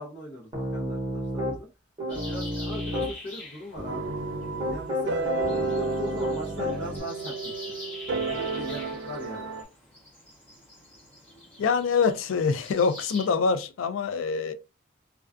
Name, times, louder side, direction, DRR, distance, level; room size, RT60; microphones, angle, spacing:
voice 1, 0.0-1.7 2.1-4.2 4.7-7.8 8.1-9.5, equal, 60° left, 0.7 m, -40 dB
Piano, 0.5-1.6 2.0-3.1 3.8-7.0, left 1 dB, 25° right, 0.8 m, -31 dB
sound 1, 2.1-13.3, left 2 dB, 10° left, 0.6 m, -45 dB
sound 2, 3.9-9.6, right 5 dB, 60° right, 0.4 m, -32 dB
voice 2, 11.6-14.5, left 5 dB, 80° left, 0.3 m, -25 dB
2.3 x 2.2 x 2.4 m
head